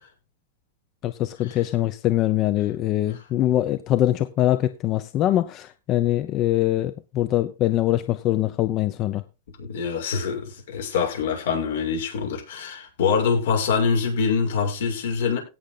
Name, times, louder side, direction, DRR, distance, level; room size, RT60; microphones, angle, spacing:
voice 1, 1.0-9.2, left 13 dB, 35° left, 0.8 m, -23 dB
voice 2, 9.6-15.4, left 5 dB, 75° left, 6.6 m, -24 dB
17.5 x 6.6 x 3.9 m
supercardioid pair, 135°, 0 cm